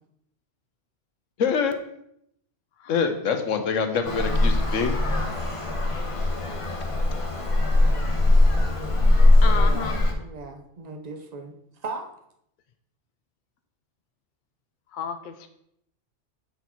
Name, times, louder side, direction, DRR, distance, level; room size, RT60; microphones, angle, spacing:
voice 1, 1.4-1.8 2.9-5.0, left 6 dB, 90° left, 7 dB, 1.2 m, -25 dB
voice 2, 2.8-3.1 9.4-10.0 14.9-15.5, left 7 dB, 55° left, 7 dB, 0.6 m, -32 dB
Traffic noise roadway noise, 4.0-10.1, left 2 dB, 30° left, 1.0 m, -20 dB
voice 3, 9.2-12.1, right 3 dB, 35° right, 4 dB, 0.9 m, -38 dB
8.3 x 4.5 x 4.1 m, 0.75 s
omnidirectional pair, 1.3 m